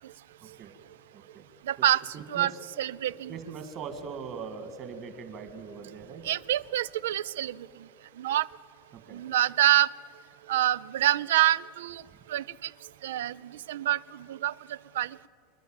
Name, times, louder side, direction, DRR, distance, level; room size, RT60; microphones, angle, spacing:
voice 1, 1.1-1.4 2.1-2.5 3.3-6.2 9.1-9.2, right 6 dB, 35° right, 8 dB, 2.1 m, -40 dB
voice 2, 1.7-2.0 2.3-2.5 2.8-3.3 6.2-7.6 8.2-8.5 9.1-9.9 10.5-12.0 12.3-12.7 13.0-13.4 13.7-14.0 14.3-14.5 15.0-15.3, right 13 dB, 90° right, 22 dB, 0.4 m, -26 dB
26.5 x 11.0 x 9.0 m, 2.5 s
supercardioid pair, 155°, 0 cm